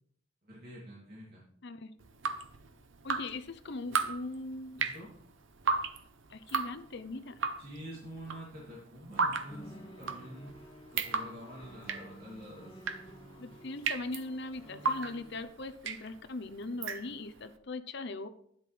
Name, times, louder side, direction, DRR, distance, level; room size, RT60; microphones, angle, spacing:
voice 1, 0.4-1.4 4.8-5.1 7.6-10.6 10.9-12.8, equal, 45° right, -6 dB, 2.7 m, -47 dB
Drip, 2.0-17.5, right 5 dB, 65° right, 0.8 m, -36 dB
voice 2, 3.0-4.9 6.3-7.4 13.4-18.3, left 2 dB, 55° left, 11 dB, 0.7 m, -40 dB
sound 1, 9.5-15.4, equal, 25° left, 2.3 m, -52 dB
11.5 x 10.5 x 3.3 m, 0.68 s
head